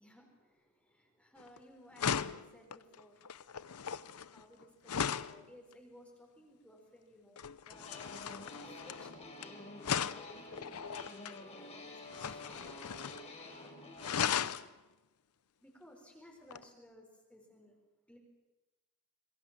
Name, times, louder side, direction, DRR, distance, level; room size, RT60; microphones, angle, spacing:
voice 1, 0.0-3.3 4.3-8.2 8.5-13.2 15.6-17.8 18.1-18.2, equal, 5° left, 1 dB, 4.6 m, -59 dB
sound 1, 1.4-1.6 2.0-5.4 7.4-9.4 9.8-11.4 12.1-13.3 13.5-13.6 14.0-14.7 16.5-16.6, left 7 dB, 85° left, 0.7 m, -37 dB
sound 2, 7.7-14.3, left 2 dB, 30° left, 5.0 m, -49 dB
26.5 x 21.5 x 7.5 m, 1.1 s
head